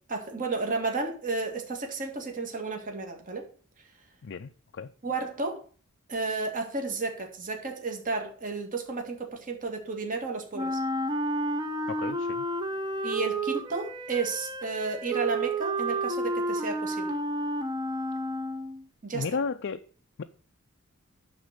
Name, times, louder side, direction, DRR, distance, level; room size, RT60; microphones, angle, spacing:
voice 1, 0.1-3.4 5.0-5.6 6.1-10.8 13.0-17.1 19.0-19.2, right 3 dB, 40° right, 1.9 m, -32 dB
voice 2, 4.2-4.9 11.9-12.5 19.1-19.8 20.2-20.3, left 5 dB, 55° left, 0.4 m, -33 dB
Wind instrument woodwind instrument, 10.5-18.8, right 1 dB, 20° right, 0.8 m, -31 dB
11.5 x 3.9 x 6.4 m
head